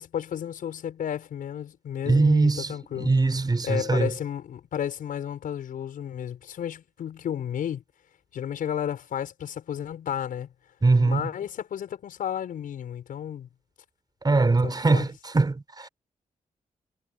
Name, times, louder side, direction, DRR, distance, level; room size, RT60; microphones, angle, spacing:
voice 1, 0.0-3.1 3.6-7.8 8.3-10.5 11.0-13.5 14.6-15.0, left 9 dB, 90° left, 6.8 m, -32 dB
voice 2, 2.1-4.1 10.8-11.3 14.2-15.9, right 3 dB, 30° right, 6.1 m, -22 dB
cardioid pair, 85°, 14 cm